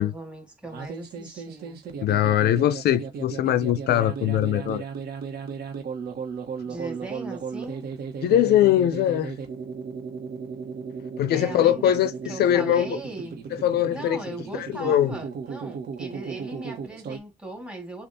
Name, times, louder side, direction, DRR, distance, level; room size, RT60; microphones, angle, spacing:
voice 1, 0.0-1.8 6.6-7.9 11.3-12.0 12.3-13.4 13.9-18.1, right 2 dB, 5° right, 1.8 m, -38 dB
sound 1, 0.6-17.2, right 5 dB, 65° right, 1.2 m, -35 dB
voice 2, 2.0-4.8 8.2-9.3 11.2-13.0 13.5-14.2 14.6-15.1, left 11 dB, 70° left, 0.4 m, -22 dB
6.7 x 2.4 x 2.7 m
cardioid pair, 150°, 17 cm